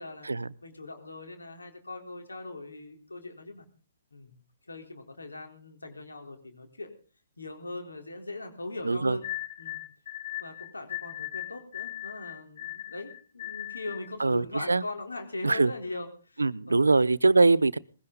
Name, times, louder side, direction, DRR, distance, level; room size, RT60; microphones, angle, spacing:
voice 1, 0.6-3.7 4.1-4.3 4.7-6.9 7.4-9.2 9.6-9.8 10.4-16.8, left 2 dB, 90° left, 3 dB, 3.9 m, -40 dB
voice 2, 8.8-9.2 14.2-14.8 15.4-15.7 16.4-17.8, right 3 dB, 85° right, 22 dB, 0.8 m, -23 dB
sound 1, 9.2-14.1, left 15 dB, 55° left, 1.7 m, -38 dB
20.5 x 16.5 x 4.0 m, 0.39 s
figure-of-eight pair, 135°, 0 cm